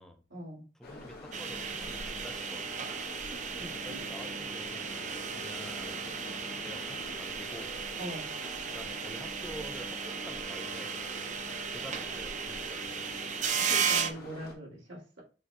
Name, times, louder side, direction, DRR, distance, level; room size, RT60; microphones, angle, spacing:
voice 1, 0.3-0.7 3.3-4.1 8.0-8.3 13.6-15.2, right 1 dB, 75° right, -3 dB, 2.3 m, -43 dB
sound 1, 0.8-14.5, left 2 dB, 55° left, 1.4 m, -46 dB
voice 2, 0.8-2.9 3.8-6.1 6.6-7.8 8.7-11.0 11.7-13.2, equal, ahead, 4 dB, 0.6 m, -48 dB
sound 2, 1.3-14.1, right 6 dB, 40° right, 0.5 m, -35 dB
6.5 x 3.0 x 2.2 m, 0.35 s
head